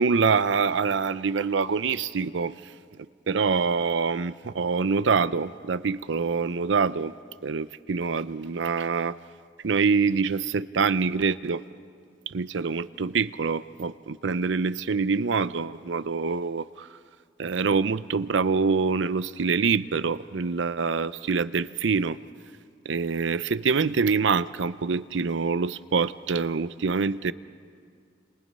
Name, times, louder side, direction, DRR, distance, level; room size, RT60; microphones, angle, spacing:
voice 1, 0.0-2.7 3.3-7.1 7.4-9.2 9.6-11.6 12.3-16.9 17.4-22.2 22.8-27.3, right 5 dB, 75° right, 16 dB, 0.6 m, -25 dB
30.0 x 27.0 x 5.5 m, 2.2 s
head